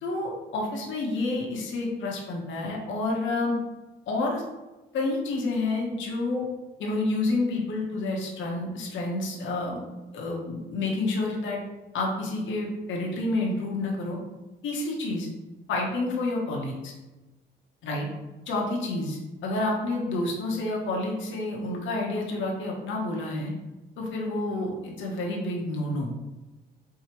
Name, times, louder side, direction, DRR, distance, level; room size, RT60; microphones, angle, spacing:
voice 1, 0.0-3.6 4.1-4.4 4.9-6.5 6.8-9.8 10.1-11.6 11.9-14.2 14.6-15.3 15.7-16.9 17.8-18.1 18.5-23.5 24.0-26.1, left 2 dB, 75° left, -2 dB, 0.9 m, -29 dB
4.7 x 2.7 x 2.9 m, 1.1 s
cardioid pair, 90°, 20 cm